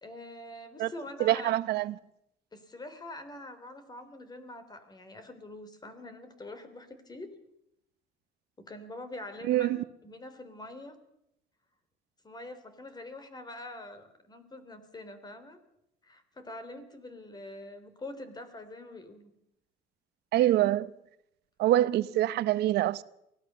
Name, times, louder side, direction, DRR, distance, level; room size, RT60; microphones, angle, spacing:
voice 1, 0.0-1.6 2.5-7.3 8.6-9.7 10.0-11.0 12.2-15.6 16.0-19.3, left 2 dB, 25° left, 3.3 m, -44 dB
voice 2, 1.2-1.9 9.5-9.8 20.3-20.9 21.6-23.0, right 14 dB, 75° right, 0.9 m, -25 dB
23.5 x 17.0 x 6.8 m
cardioid pair, 110°, 17 cm